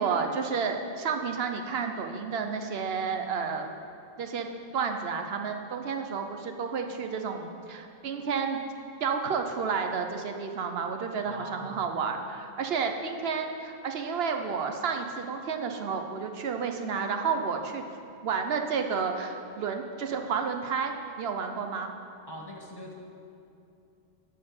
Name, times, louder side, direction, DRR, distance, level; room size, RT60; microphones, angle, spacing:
voice 1, 0.0-3.7 4.2-4.5 4.7-8.6 9.0-17.9 18.2-21.9, right 5 dB, 75° right, 5 dB, 0.9 m, -31 dB
voice 2, 11.2-11.9 22.3-22.9, equal, 25° left, -2 dB, 1.0 m, -43 dB
10.5 x 4.3 x 7.7 m, 2.7 s
omnidirectional pair, 1.0 m